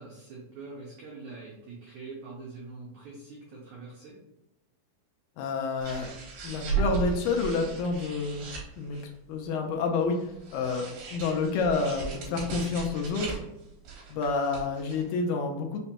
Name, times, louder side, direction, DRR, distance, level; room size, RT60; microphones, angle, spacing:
voice 1, 0.0-4.2, right 3 dB, 85° right, -3 dB, 1.6 m, -44 dB
voice 2, 5.4-6.1 6.4-8.5 8.8-9.0 9.3-10.8 11.1-13.4 14.1-15.8, left 4 dB, 80° left, 2 dB, 2.1 m, -29 dB
sound 1, 5.8-9.1 10.1-15.1, right 5 dB, 65° right, 2.6 m, -36 dB
5.8 x 2.2 x 2.8 m, 0.90 s
omnidirectional pair, 4.3 m